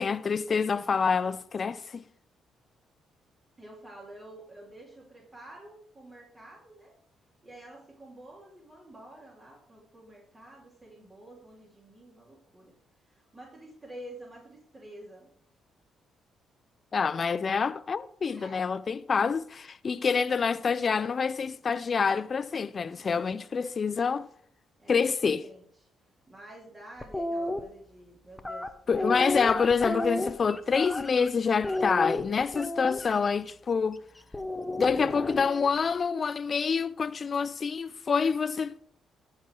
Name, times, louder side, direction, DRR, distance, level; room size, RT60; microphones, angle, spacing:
voice 1, 0.0-2.0 16.9-24.3 24.9-25.4 28.9-34.0 34.8-38.8, left 5 dB, 45° left, 0.4 m, -27 dB
voice 2, 3.6-6.9 7.4-12.7 13.0-15.3 18.3-18.7 22.9-23.4 24.8-25.9 26.3-29.2, right 1 dB, 30° right, 2.9 m, -49 dB
sound 1, 27.0-27.6 28.4-31.3 31.6-33.1 34.3-35.7, left 1 dB, 10° left, 0.9 m, -32 dB
13.5 x 4.8 x 4.6 m
cardioid pair, 80°, 0 cm